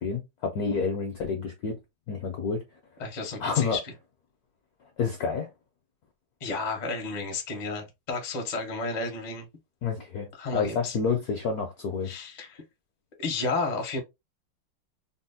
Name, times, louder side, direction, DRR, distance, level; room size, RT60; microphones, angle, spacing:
voice 1, 0.0-1.7 2.1-2.6 3.4-3.8 5.0-5.5 9.8-12.1, left 5 dB, 75° left, 0.8 m, -29 dB
voice 2, 3.0-3.8 6.4-9.5 10.4-11.0 12.0-12.6 13.2-14.0, left 3 dB, 55° left, 0.4 m, -32 dB
4.2 x 2.0 x 2.7 m
omnidirectional pair, 2.3 m